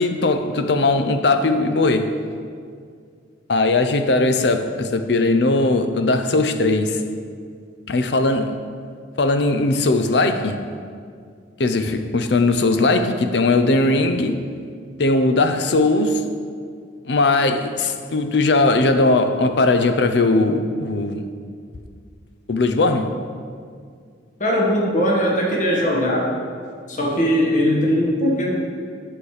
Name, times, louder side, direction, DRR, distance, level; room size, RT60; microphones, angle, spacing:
voice 1, 0.0-2.2 3.5-7.0 7.9-8.6 9.2-10.6 11.6-14.4 15.0-16.2 17.0-21.2 22.5-23.1, left 2 dB, 65° left, 0.6 m, -19 dB
voice 2, 24.4-26.3 26.9-28.6, equal, 40° left, 1.5 m, -20 dB
8.7 x 6.6 x 4.9 m
head